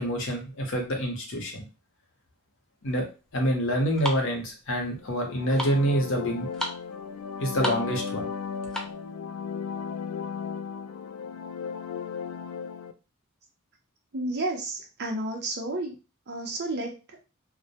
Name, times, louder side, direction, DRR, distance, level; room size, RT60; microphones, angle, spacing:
voice 1, 0.0-1.7 2.8-3.1 3.3-6.5 7.4-8.3, equal, 60° left, 2 dB, 0.7 m, -27 dB
sound 1, 2.9-9.1, left 1 dB, 5° left, 0.4 m, -37 dB
sound 2, 5.0-12.9, left 6 dB, 85° left, 0.3 m, -35 dB
voice 2, 14.1-15.9 16.3-17.0, right 2 dB, 50° right, 1 dB, 0.6 m, -31 dB
2.1 x 2.1 x 2.7 m, 0.31 s
head